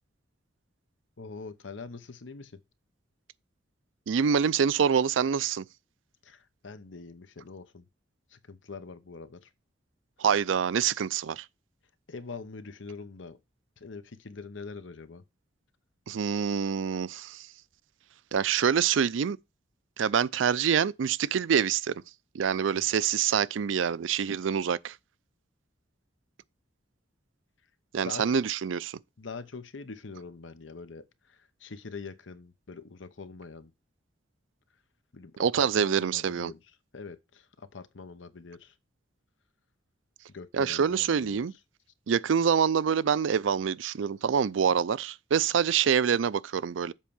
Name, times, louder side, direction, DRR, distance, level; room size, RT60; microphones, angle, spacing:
voice 1, 1.2-2.6 6.2-7.8 8.3-9.5 12.1-13.4 13.8-15.2 22.7-23.0 28.0-28.4 29.2-33.7 35.1-36.6 36.9-38.8 40.3-41.5, left 4 dB, 80° left, 0.9 m, -44 dB
voice 2, 4.1-5.6 10.2-11.5 16.1-17.5 18.3-19.4 20.0-22.0 22.3-25.0 27.9-29.0 35.4-36.5 40.5-41.5 42.1-46.9, right 7 dB, 85° right, 0.4 m, -26 dB
7.5 x 4.4 x 7.0 m
head